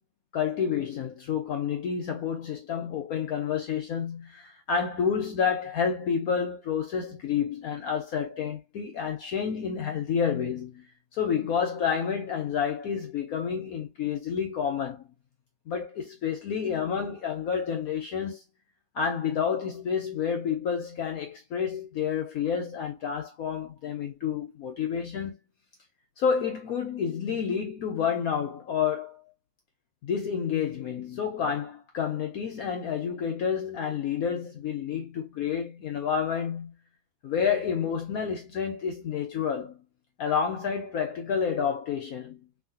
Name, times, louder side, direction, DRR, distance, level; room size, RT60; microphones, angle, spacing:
voice 1, 0.3-10.9 11.1-15.1 15.7-18.4 18.9-25.4 26.2-29.2 30.0-36.7 37.2-39.8 40.2-42.5, left 7 dB, 70° left, 0.9 m, -29 dB
3.1 x 2.5 x 2.6 m
omnidirectional pair, 2.0 m